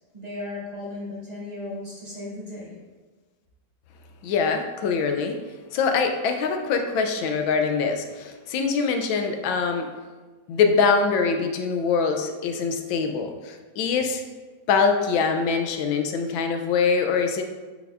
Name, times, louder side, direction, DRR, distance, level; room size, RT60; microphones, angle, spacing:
voice 1, 0.1-2.8, left 2 dB, 20° right, -9 dB, 2.3 m, -35 dB
voice 2, 4.2-5.4 5.7-9.9 10.5-14.2 14.7-17.4, left 5 dB, 85° left, 5 dB, 1.4 m, -23 dB
9.3 x 5.2 x 2.5 m, 1.3 s
omnidirectional pair, 2.1 m